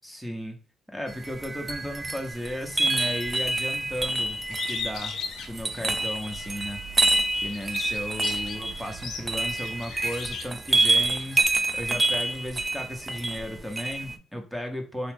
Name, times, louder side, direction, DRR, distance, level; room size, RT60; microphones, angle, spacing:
voice 1, 0.0-0.6 0.9-5.2 5.5-6.8 7.4-11.4 11.8-15.1, equal, ahead, 3 dB, 0.8 m, -35 dB
Windchimes recording, 1.1-14.2, right 2 dB, 20° right, 0.3 m, -27 dB
Bird, 4.5-6.5 6.9-11.4, left 6 dB, 70° left, 0.5 m, -37 dB
3.0 x 2.3 x 3.4 m, 0.38 s
cardioid pair, 90°, 0 cm